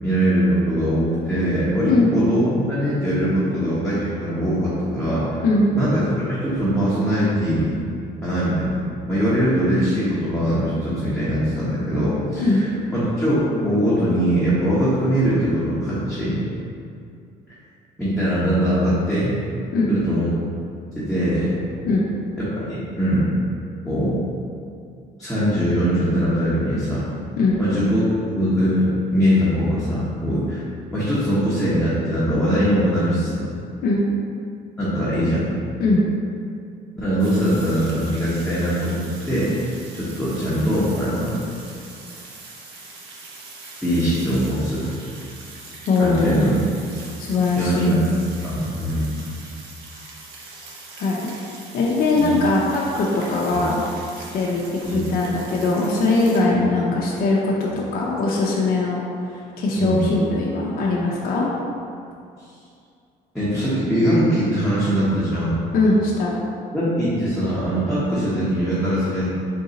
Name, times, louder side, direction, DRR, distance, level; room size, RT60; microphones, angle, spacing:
voice 1, 0.0-5.2 5.7-7.8 8.2-8.8 9.1-12.6 12.9-16.4 18.0-19.3 19.9-20.3 21.0-21.6 22.4-23.2 23.8-24.1 25.2-27.0 27.6-28.0 28.4-30.6 30.9-33.4 34.8-35.4 37.0-41.4 43.8-44.9 45.2-45.3 46.0-46.6 47.6-48.0 48.3-49.1 52.2-52.3 53.5-53.6 54.8-55.0 59.8-60.0 63.3-65.5 66.7-69.3, equal, 5° left, -12 dB, 1.0 m, -21 dB
sound 1, 37.2-56.4, right 3 dB, 75° right, 0.8 m, -42 dB
voice 2, 45.9-46.5 47.2-47.9 50.9-51.3 51.7-53.8 54.2-59.0 59.3-61.5 65.7-66.4, left 3 dB, 60° left, -4 dB, 0.6 m, -20 dB
3.9 x 2.6 x 4.0 m, 2.4 s
cardioid pair, 110°, 17 cm